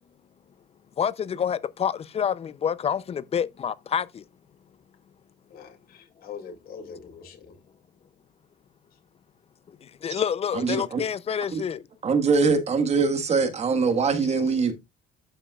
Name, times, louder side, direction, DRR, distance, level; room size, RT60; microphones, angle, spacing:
voice 1, 1.0-4.2 10.0-11.8, left 8 dB, 35° left, 0.5 m, -27 dB
voice 2, 5.5-7.6, left 6 dB, 60° left, 2.5 m, -43 dB
voice 3, 10.6-11.0 11.5-11.6 12.0-14.7, right 4 dB, 40° right, 1.5 m, -22 dB
12.5 x 5.4 x 2.4 m
cardioid pair, 110°, 17 cm